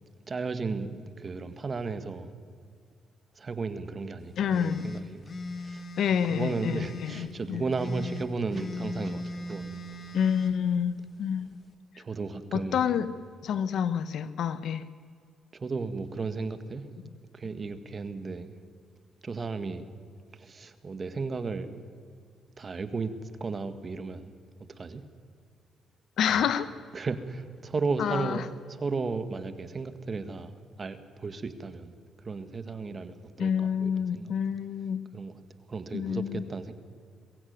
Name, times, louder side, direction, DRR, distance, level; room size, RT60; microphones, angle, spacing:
voice 1, 0.3-2.3 3.4-5.2 5.6-5.8 6.3-9.8 12.0-12.9 15.5-16.9 17.3-18.5 19.2-19.8 20.4-21.8 22.6-23.1 23.4-24.3 24.8-25.0 26.3-26.5 26.9-28.5 28.8-30.5 30.8-31.9 32.2-34.3 35.1-35.3 35.7-36.7, right 4 dB, 35° right, 10 dB, 1.8 m, -34 dB
voice 2, 4.4-4.9 6.0-7.6 10.1-11.6 12.5-13.1 13.4-14.8 26.2-26.7 28.0-28.5 33.4-35.0 35.9-36.4, left 8 dB, 70° left, 14 dB, 1.1 m, -28 dB
sound 1, 4.5-7.3 7.7-10.5, left 3 dB, 40° left, 2.1 m, -38 dB
22.0 x 16.0 x 9.5 m, 2.2 s
cardioid pair, 90°, 0 cm